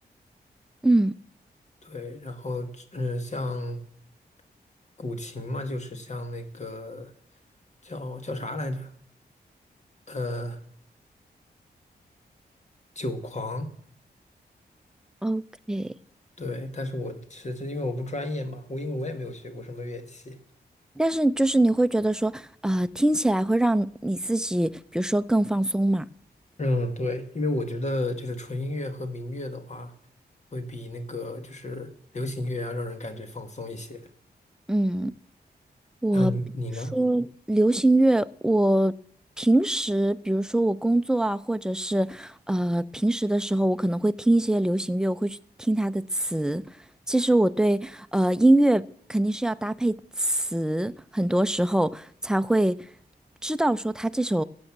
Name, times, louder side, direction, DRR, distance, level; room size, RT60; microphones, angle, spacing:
voice 1, 0.8-1.1 15.2-15.4 15.7-15.9 21.0-26.1 34.7-35.1 36.0-36.3 36.9-39.0 39.4-46.6 47.1-52.8 53.4-54.4, right 1 dB, 5° right, 0.6 m, -23 dB
voice 2, 1.8-3.8 5.0-7.1 7.8-8.9 10.1-10.6 13.0-13.7 16.4-20.4 26.6-29.9 30.5-34.0 36.1-36.9, left 1 dB, 45° left, 1.9 m, -32 dB
16.0 x 8.0 x 7.4 m
cardioid pair, 75°, 17 cm